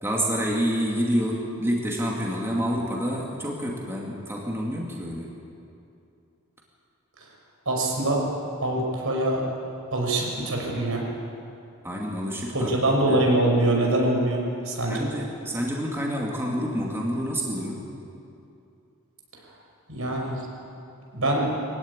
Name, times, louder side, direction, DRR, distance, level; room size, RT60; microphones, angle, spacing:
voice 1, 0.0-5.3 11.8-12.7 13.1-13.3 14.9-17.9, equal, 10° right, -3 dB, 2.5 m, -28 dB
voice 2, 7.7-8.2 8.6-9.4 9.9-11.0 12.5-14.4 14.7-15.0 19.9-20.5 21.1-21.5, right 1 dB, 70° right, -1 dB, 5.6 m, -23 dB
22.5 x 15.5 x 9.9 m, 2.7 s
head